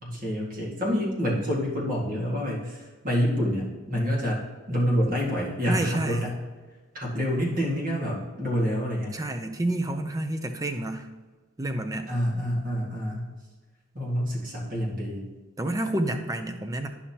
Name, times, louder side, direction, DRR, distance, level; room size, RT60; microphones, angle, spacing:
voice 1, 0.0-6.3 6.9-9.2 12.1-13.3 13.9-15.3, equal, 40° right, -3 dB, 1.9 m, -27 dB
voice 2, 5.7-6.2 9.1-11.1 11.6-12.1 15.6-16.9, right 1 dB, 15° right, 7 dB, 0.5 m, -29 dB
11.0 x 5.6 x 2.9 m, 1.3 s
head